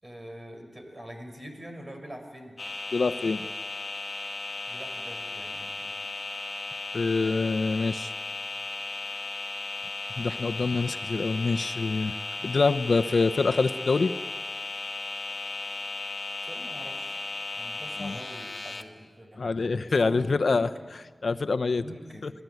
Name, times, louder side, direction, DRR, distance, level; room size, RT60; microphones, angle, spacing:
voice 1, 0.0-2.6 4.7-6.0 16.4-17.2 17.5-20.9 21.8-22.3, equal, 30° right, 4 dB, 5.5 m, -44 dB
sound 1, 2.6-18.8, left 3 dB, 45° left, 2.0 m, -36 dB
voice 2, 2.9-3.5 6.9-8.1 10.2-12.1 12.4-14.1 18.0-18.2 19.4-20.7 21.2-21.9 22.2-22.3, left 4 dB, 70° left, 11 dB, 0.9 m, -25 dB
27.0 x 18.5 x 9.4 m, 1.4 s
wide cardioid pair, 70°, 0 cm